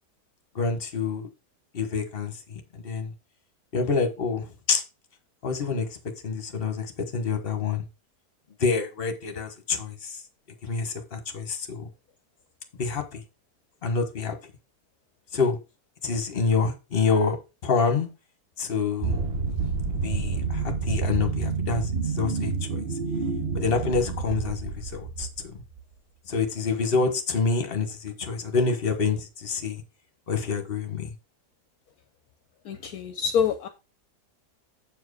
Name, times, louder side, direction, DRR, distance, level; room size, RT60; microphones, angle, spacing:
voice 1, 0.5-1.3 1.7-3.1 3.7-4.4 4.7-4.8 5.4-5.9 6.2-6.9 7.1-7.8 8.6-10.1 10.7-11.8 12.8-13.2 13.8-14.3 15.3-15.6 16.0-17.4 17.6-18.1 18.6-19.1 20.0-22.5 23.5-25.3 26.3-29.8 30.3-31.1, left 5 dB, 40° left, 1.4 m, -27 dB
sound 1, 19.0-25.8, right 4 dB, 40° right, 1.1 m, -29 dB
voice 2, 32.6-33.7, left 7 dB, 70° left, 1.2 m, -26 dB
7.9 x 4.7 x 4.8 m
omnidirectional pair, 1.7 m